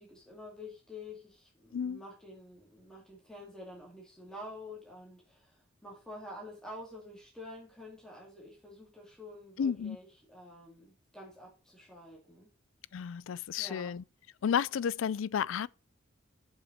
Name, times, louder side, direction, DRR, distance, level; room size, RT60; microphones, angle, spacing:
voice 1, 0.0-12.5 13.6-13.9, left 1 dB, 5° left, 2.6 m, -48 dB
voice 2, 9.6-10.0 12.9-14.0 14.4-15.7, left 7 dB, 70° left, 0.4 m, -32 dB
7.3 x 5.6 x 6.4 m
head